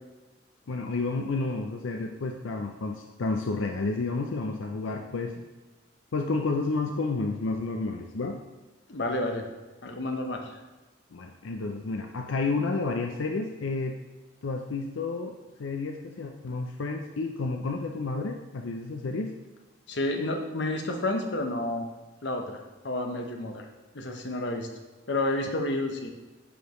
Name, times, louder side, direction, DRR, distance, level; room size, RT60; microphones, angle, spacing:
voice 1, 0.7-5.5 6.1-8.4 11.1-14.0 14.4-19.4, left 3 dB, 90° left, 3 dB, 0.5 m, -31 dB
voice 2, 8.9-9.4 9.8-10.6 19.9-21.9 22.2-23.7 23.9-24.7 25.1-26.1, left 2 dB, 65° left, 4 dB, 0.9 m, -30 dB
10.0 x 5.0 x 3.1 m, 1.2 s
head